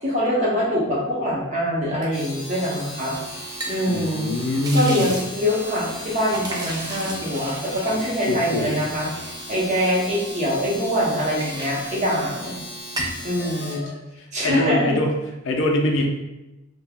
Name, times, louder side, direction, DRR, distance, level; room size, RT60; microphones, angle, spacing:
voice 1, 0.0-3.2 3.7-4.3 4.7-9.1 9.5-12.6 13.2-13.9 14.3-15.0, equal, 35° right, -5 dB, 0.8 m, -24 dB
Domestic sounds home sounds, 2.0-13.9, left 1 dB, 20° left, 0.6 m, -37 dB
sound 1, 2.8-10.6 10.9-12.6 12.8-13.3, right 1 dB, 20° right, 0.3 m, -36 dB
voice 2, 3.9-5.1 8.3-8.9 13.4-14.0 14.4-15.2 15.4-16.1, left 1 dB, 60° left, 1 dB, 0.4 m, -23 dB
2.3 x 2.0 x 3.4 m, 0.98 s
head